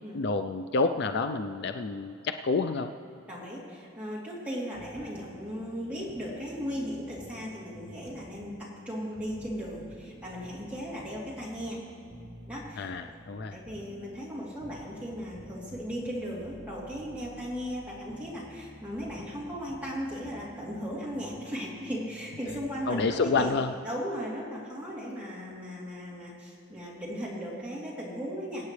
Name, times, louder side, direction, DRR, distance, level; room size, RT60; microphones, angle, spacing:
voice 1, 0.1-2.9 12.8-13.6 22.9-23.7, left 4 dB, 50° left, 8 dB, 0.4 m, -28 dB
voice 2, 3.3-11.8 12.4-12.9 13.5-23.5 23.8-28.6, equal, 5° right, -7 dB, 3.1 m, -37 dB
sound 1, 4.7-23.4, right 1 dB, 50° right, 2.4 m, -50 dB
25.0 x 8.5 x 3.3 m, 2.7 s
head